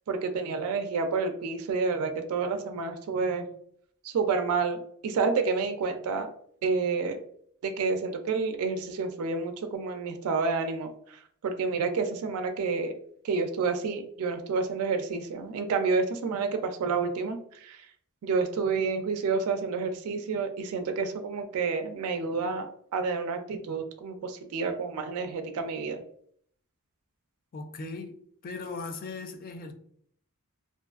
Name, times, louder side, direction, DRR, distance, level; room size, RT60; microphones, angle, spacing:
voice 1, 0.1-3.5 4.0-6.3 6.6-7.2 7.6-12.9 13.2-17.9 18.2-22.7 22.9-26.0, right 4 dB, 70° right, 0.3 m, -29 dB
voice 2, 27.5-29.7, left 3 dB, 40° left, 0.3 m, -38 dB
2.4 x 2.3 x 2.3 m
head